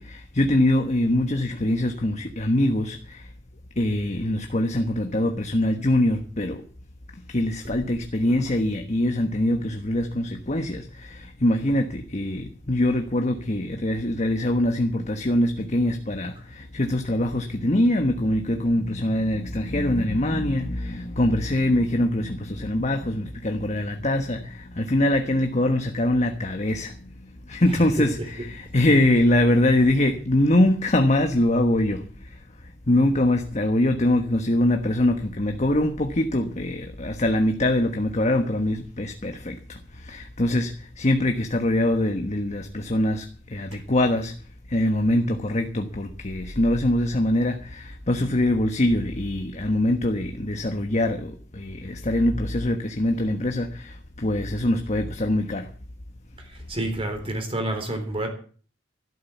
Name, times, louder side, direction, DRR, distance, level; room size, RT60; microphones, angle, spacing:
voice 1, 0.0-3.2 3.8-6.6 7.3-26.9 27.5-32.0 32.9-39.8 40.0-43.2 43.5-44.3 44.7-55.7, left 1 dB, 40° left, 1.3 m, -23 dB
voice 2, 56.7-58.3, right 1 dB, 30° right, 3.6 m, -28 dB
12.5 x 12.5 x 7.2 m
head